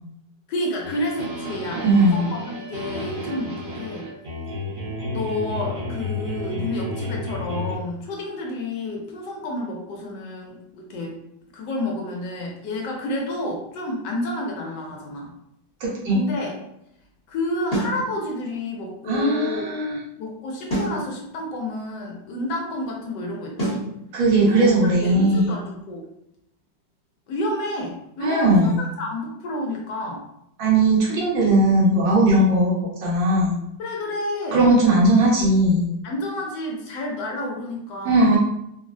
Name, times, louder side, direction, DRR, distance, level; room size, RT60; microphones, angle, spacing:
voice 1, 0.5-4.1 5.1-11.2 11.5-15.3 16.1-16.6 17.3-19.7 20.2-23.9 24.5-24.7 25.0-26.1 27.3-30.2 33.8-34.7 36.0-38.4, left 1 dB, 75° left, -1 dB, 1.2 m, -30 dB
sound 1, 0.8-7.7, left 1 dB, 65° right, 1.6 m, -31 dB
voice 2, 1.7-2.2 15.8-16.2 19.1-20.0 24.1-25.5 28.2-28.8 30.6-33.5 34.5-35.9 38.0-38.4, right 1 dB, 85° right, -6 dB, 1.6 m, -18 dB
sound 2, 17.7-18.0 20.7-21.0 23.6-23.9, right 1 dB, 15° left, 0.8 m, -25 dB
3.6 x 2.0 x 2.6 m, 0.80 s
omnidirectional pair, 2.0 m